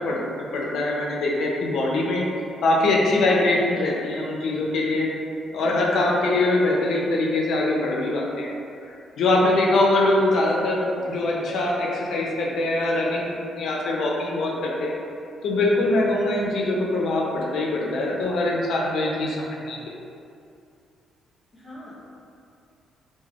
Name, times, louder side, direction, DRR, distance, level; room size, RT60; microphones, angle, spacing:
voice 1, 0.0-2.3 2.6-5.1 5.5-8.5 9.2-15.0 15.4-19.8, left 2 dB, 70° left, -2 dB, 0.4 m, -23 dB
voice 2, 5.5-5.9 21.5-21.9, left 1 dB, 40° left, -10 dB, 0.8 m, -42 dB
3.3 x 2.1 x 2.3 m, 2.5 s
cardioid pair, 90°, 0 cm